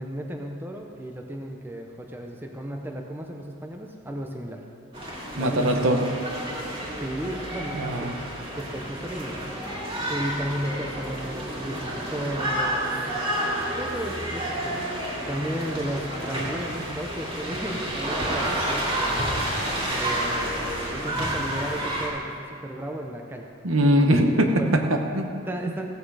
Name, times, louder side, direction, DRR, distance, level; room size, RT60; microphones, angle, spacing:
voice 1, 0.0-4.6 5.4-6.1 7.0-8.1 8.6-9.6 9.9-13.5 13.7-19.6 19.9-23.5 24.2-24.8 25.5-25.9, right 1 dB, 10° right, 2 dB, 0.7 m, -34 dB
sound 1, 4.9-22.1, right 1 dB, 25° right, 2.1 m, -30 dB
voice 2, 5.3-6.1 7.7-8.1 23.6-25.3, right 1 dB, 70° right, 4 dB, 1.0 m, -21 dB
15.0 x 8.4 x 4.9 m, 2.6 s
head